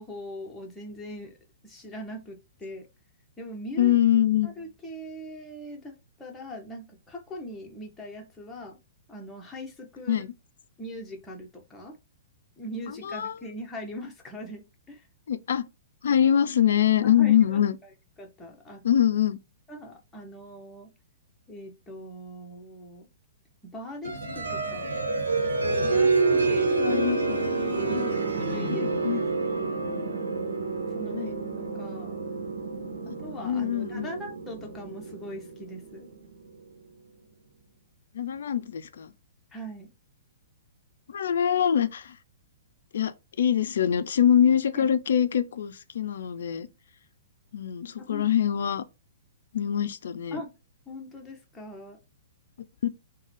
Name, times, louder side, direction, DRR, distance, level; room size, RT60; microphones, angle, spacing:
voice 1, 0.0-1.3 1.6-2.9 3.4-3.9 4.4-8.8 9.1-10.2 10.8-12.0 12.6-15.0 17.0-17.6 18.2-18.8 19.7-20.9 21.5-23.1 23.6-24.9 25.8-27.0 27.9-28.0 28.4-29.8 30.9-32.2 33.0-36.1 39.5-39.9 44.7-44.9 48.0-48.3 50.3-50.5 50.9-52.0, equal, 10° left, 0.9 m, -41 dB
voice 2, 3.8-4.6 10.1-10.3 12.9-13.4 15.3-15.6 16.0-17.8 18.8-19.4 26.3-27.4 27.9-28.2 28.7-29.3 31.1-31.3 33.1-33.2 33.4-34.1 38.1-39.1 41.1-42.2 42.9-46.7 47.5-48.8 49.5-50.4 52.8-52.9, left 9 dB, 65° left, 0.4 m, -24 dB
sound 1, 24.0-36.6, right 3 dB, 85° right, 1.1 m, -28 dB
3.8 x 2.2 x 3.2 m
hypercardioid pair, 120°, 0 cm